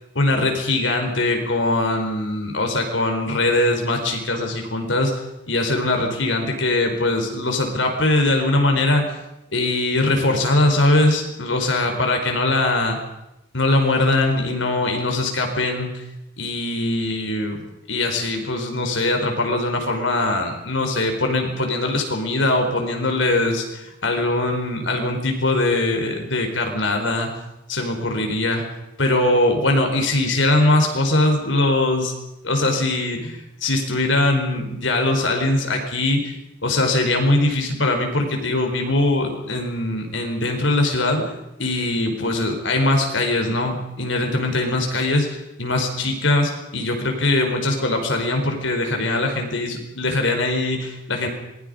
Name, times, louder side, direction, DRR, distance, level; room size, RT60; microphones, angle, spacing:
voice 1, 0.2-5.1 5.5-9.0 9.5-13.0 13.5-16.0 16.4-17.6 17.9-27.3 27.7-28.6 29.0-32.1 32.4-36.3 36.6-41.2 41.6-51.3, left 2 dB, 85° left, 4 dB, 4.5 m, -21 dB
27.0 x 21.5 x 5.2 m, 0.90 s
head